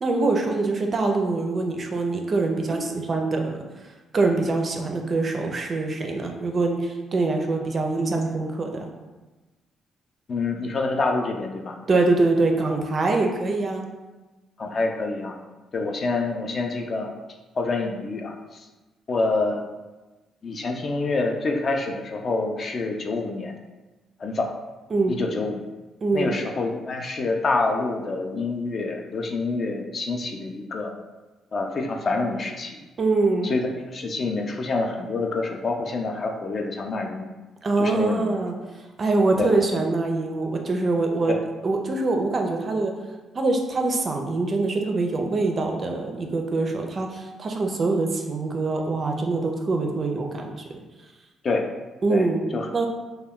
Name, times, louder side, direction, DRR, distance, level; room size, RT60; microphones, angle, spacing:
voice 1, 0.0-3.6 4.1-8.9 11.9-13.8 24.9-25.2 26.0-26.3 33.0-33.5 37.6-38.5 39.0-41.4 41.6-42.9 43.3-50.7 52.0-52.4 52.7-52.9, right 3 dB, 40° right, 3 dB, 0.4 m, -24 dB
voice 2, 10.3-11.8 14.6-15.4 15.7-17.1 17.6-18.7 19.1-19.7 20.4-23.5 24.2-24.5 25.1-25.6 26.1-30.9 31.5-32.8 33.4-37.3 37.8-38.3 39.4-39.5 41.3-41.4 51.4-51.7 52.1-52.3 52.5-52.7, left 3 dB, 45° left, 2 dB, 0.3 m, -27 dB
2.2 x 2.2 x 3.6 m, 1.2 s
cardioid pair, 90°, 0 cm